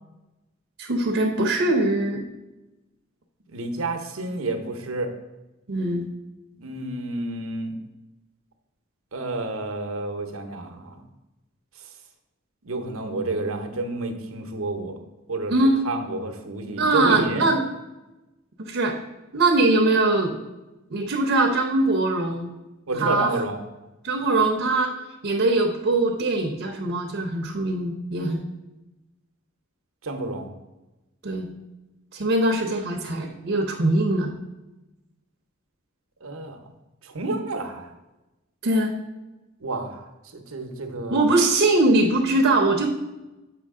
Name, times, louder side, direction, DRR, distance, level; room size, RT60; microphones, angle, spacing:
voice 1, 0.8-2.2 5.7-6.1 15.5-15.8 16.8-17.6 18.6-18.9 19.3-20.3 20.9-22.5 22.9-23.4 24.0-24.9 25.2-28.4 31.2-31.5 32.1-34.3 38.6-38.9 41.1-42.9, right 2 dB, 60° right, 1 dB, 0.7 m, -22 dB
voice 2, 3.5-5.1 6.6-7.7 9.1-11.0 12.6-14.9 15.3-15.5 15.8-17.5 22.9-23.6 30.0-30.5 36.2-36.6 37.0-37.9 39.6-40.0 40.3-41.2, right 2 dB, 85° right, 5 dB, 0.8 m, -30 dB
7.6 x 4.9 x 3.6 m, 1.0 s
head